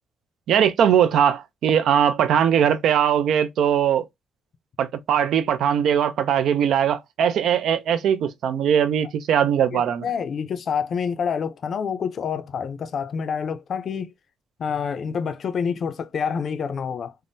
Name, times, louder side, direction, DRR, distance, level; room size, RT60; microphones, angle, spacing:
voice 1, 0.5-4.1 4.8-10.1, right 8 dB, 75° right, 0.4 m, -20 dB
voice 2, 9.7-14.1 14.6-17.2, left 6 dB, 55° left, 0.5 m, -27 dB
3.4 x 2.1 x 2.6 m
cardioid pair, 90°, 0 cm